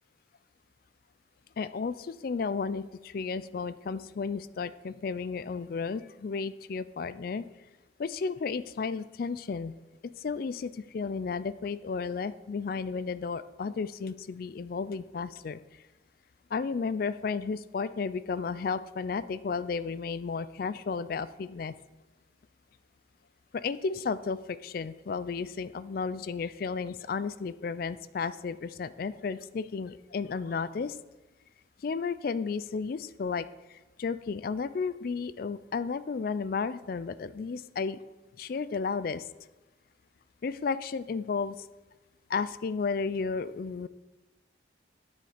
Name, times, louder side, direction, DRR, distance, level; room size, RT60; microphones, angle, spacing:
voice 1, 1.6-7.5 8.0-9.7 10.0-15.6 16.5-21.7 23.5-31.0 31.8-38.0 38.4-39.2 40.4-41.7 42.3-43.9, left 5 dB, 50° left, 15 dB, 0.3 m, -33 dB
9.5 x 6.3 x 5.0 m, 1.1 s
head